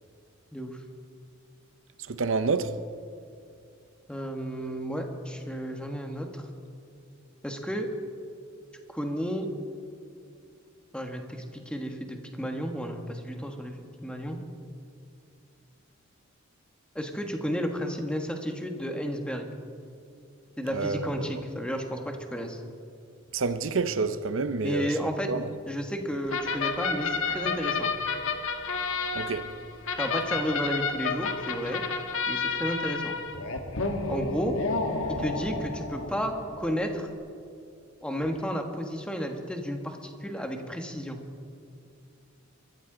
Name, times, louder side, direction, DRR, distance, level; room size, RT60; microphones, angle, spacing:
voice 1, 2.1-2.7 20.7-21.3 23.3-25.5 29.1-29.4, right 4 dB, 70° right, 0.7 m, -29 dB
voice 2, 4.1-6.5 7.4-7.9 8.9-9.5 10.9-14.4 16.9-19.5 20.6-22.6 24.6-25.3 25.7-27.9 30.0-31.8 32.3-33.2 34.1-34.5 35.1-37.1 38.0-41.2, equal, 5° left, 1.3 m, -32 dB
sound 1, 26.3-36.6, left 4 dB, 85° left, 1.4 m, -31 dB
23.0 x 13.5 x 3.9 m
head